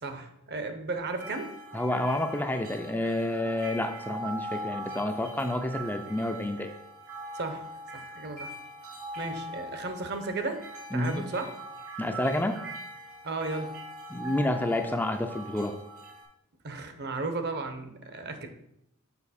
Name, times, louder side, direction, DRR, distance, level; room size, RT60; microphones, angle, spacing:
voice 1, 0.0-1.5 7.3-7.7 7.9-8.5 9.2-10.6 10.9-11.6 13.2-13.7 16.6-18.5, right 3 dB, 50° right, 7 dB, 0.8 m, -34 dB
sound 1, 1.2-16.2, equal, 65° right, 2.4 m, -41 dB
voice 2, 1.7-6.7 10.9-11.2 12.0-12.6 14.1-15.7, left 1 dB, 10° left, 5 dB, 0.4 m, -29 dB
7.0 x 5.0 x 4.2 m, 0.77 s
head